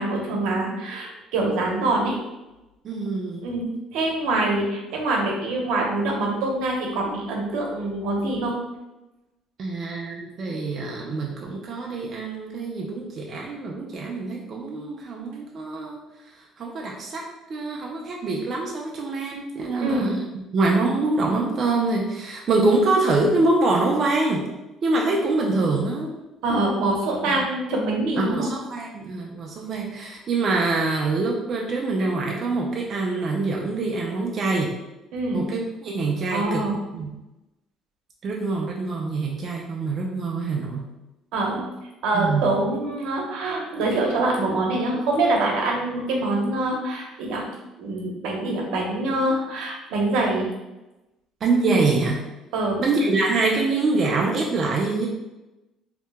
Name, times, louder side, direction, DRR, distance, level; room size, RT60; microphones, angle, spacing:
voice 1, 0.0-2.2 3.4-8.5 19.8-20.1 26.4-28.5 35.1-35.4 36.3-36.7 41.3-41.6 42.0-47.5 47.8-50.5 52.5-52.8, right 2 dB, 80° right, -1 dB, 0.8 m, -25 dB
voice 2, 2.8-3.5 9.6-16.0 16.6-17.2 17.5-20.2 20.5-24.5 24.8-26.1 27.3-27.4 28.2-34.8 35.3-36.6 36.9-37.1 38.2-40.9 42.1-42.5 51.4-52.2 52.8-55.1, right 3 dB, 40° right, -1 dB, 0.4 m, -24 dB
2.7 x 2.1 x 3.3 m, 1.0 s
cardioid pair, 140°, 0 cm